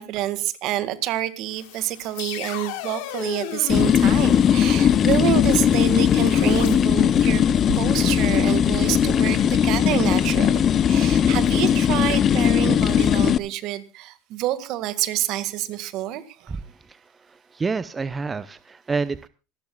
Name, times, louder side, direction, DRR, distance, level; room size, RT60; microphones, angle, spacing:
voice 1, 0.0-7.4 7.7-16.6, right 13 dB, 60° right, 13 dB, 1.8 m, -28 dB
sound 1, 1.5-6.7, left 10 dB, 75° left, 3.2 m, -35 dB
sound 2, 3.7-13.4, left 9 dB, 40° left, 0.7 m, -19 dB
sound 3, 4.7-10.4, right 10 dB, 90° right, 1.3 m, -39 dB
voice 2, 16.5-19.3, right 4 dB, 20° right, 15 dB, 0.7 m, -29 dB
26.0 x 12.0 x 2.3 m, 0.30 s
supercardioid pair, 100°, 0 cm